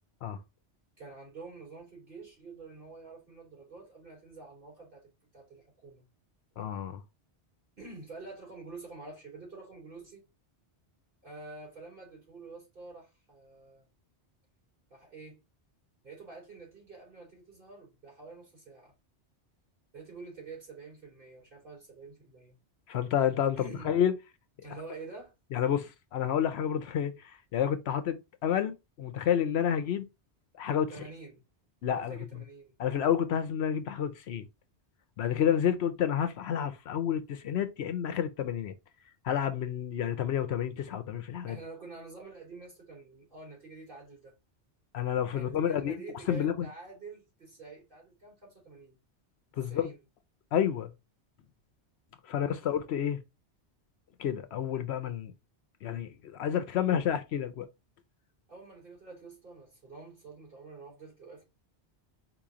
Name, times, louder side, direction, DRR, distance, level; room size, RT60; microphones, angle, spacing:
voice 1, 1.0-6.0 7.8-10.2 11.2-13.9 14.9-15.4 16.0-18.9 19.9-22.5 23.6-23.9 24.6-25.3 30.9-31.4 31.8-32.7 41.4-44.3 45.3-49.0 49.5-50.0 52.3-52.8 58.5-61.4, right 3 dB, 50° right, 3.0 m, -48 dB
voice 2, 6.6-7.0 22.9-24.1 25.5-30.1 30.6-30.9 31.8-32.2 32.8-34.5 35.2-38.7 39.2-41.6 44.9-46.0 46.3-46.7 49.6-49.9 50.5-50.9 52.3-53.2 54.2-55.3 55.8-57.7, left 9 dB, 70° left, 0.8 m, -29 dB
4.4 x 3.0 x 3.6 m
omnidirectional pair, 1.1 m